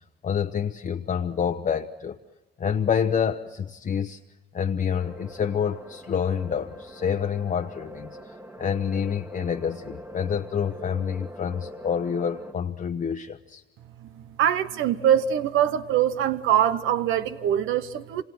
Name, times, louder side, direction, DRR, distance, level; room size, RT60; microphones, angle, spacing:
voice 1, 0.2-2.2 2.6-4.2 4.5-8.1 8.6-13.6, left 7 dB, 40° left, 4 dB, 0.9 m, -27 dB
sound 1, 4.9-12.5, equal, 15° right, 1.5 m, -43 dB
voice 2, 14.4-18.2, right 10 dB, 85° right, 12 dB, 0.9 m, -23 dB
27.0 x 26.5 x 6.2 m, 1.1 s
cardioid pair, 90°, 20 cm